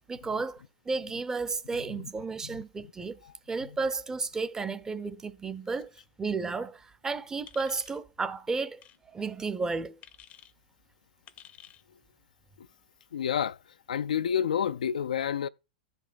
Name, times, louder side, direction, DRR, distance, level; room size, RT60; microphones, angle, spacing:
voice 1, 0.1-3.2 3.5-5.9 6.2-10.0, right 4 dB, 15° right, 0.6 m, -33 dB
sound 1, 7.5-8.0 8.8-9.0 10.0-10.5 11.3-11.8, left 10 dB, 30° left, 0.6 m, -52 dB
voice 2, 13.1-13.6 13.9-15.5, left 8 dB, 70° left, 0.4 m, -29 dB
16.0 x 5.3 x 2.5 m
figure-of-eight pair, 100°, 4 cm